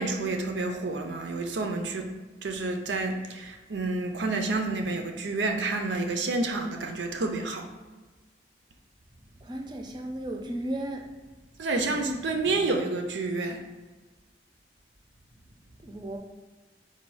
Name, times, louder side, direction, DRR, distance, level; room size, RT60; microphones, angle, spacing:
voice 1, 0.0-2.1 2.4-7.7 11.6-13.6, right 3 dB, 80° right, 4 dB, 0.5 m, -29 dB
voice 2, 9.4-11.1 15.8-16.2, right 1 dB, 25° right, 3 dB, 0.4 m, -34 dB
4.2 x 2.3 x 4.6 m, 1.3 s
head